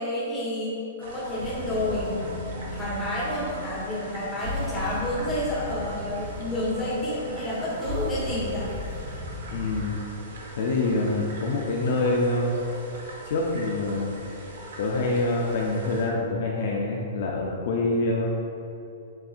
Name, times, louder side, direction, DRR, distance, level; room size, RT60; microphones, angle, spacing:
voice 1, 0.0-2.1 2.7-8.7, left 1 dB, 10° left, -9 dB, 1.4 m, -29 dB
sound 1, 1.0-16.1, right 1 dB, 70° right, 1.0 m, -42 dB
sound 2, 1.4-10.0, left 1 dB, 25° right, 1.0 m, -36 dB
voice 2, 9.5-10.0 10.6-12.5 13.2-14.2 14.8-18.3, left 2 dB, 55° left, -2 dB, 0.5 m, -26 dB
7.7 x 2.7 x 2.4 m, 2.8 s
hypercardioid pair, 160°, 0 cm